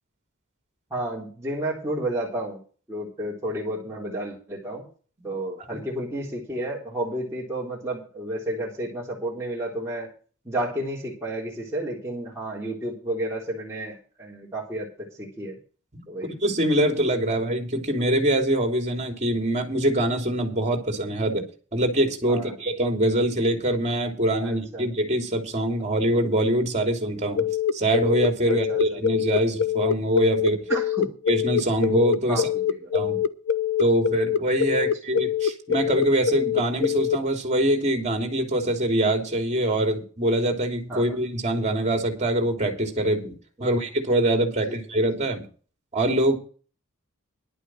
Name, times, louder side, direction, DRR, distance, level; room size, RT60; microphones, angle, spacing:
voice 1, 0.9-2.6 2.9-4.8 5.2-10.1 10.5-15.6 16.1-16.3 22.3-22.5 24.4-24.9 28.5-29.0 30.7-31.2 32.3-33.2 34.8-34.9 40.9-41.2 43.6-43.7 44.6-44.8, right 1 dB, 15° right, -5 dB, 3.8 m, -31 dB
voice 2, 15.9-21.4 21.7-30.7 31.3-32.5 32.9-33.2 33.8-43.3 43.6-45.5 45.9-46.4, right 1 dB, 35° right, 4 dB, 3.4 m, -24 dB
sound 1, 27.4-37.2, left 8 dB, 60° left, 0.8 m, -24 dB
11.5 x 8.1 x 6.4 m, 0.38 s
head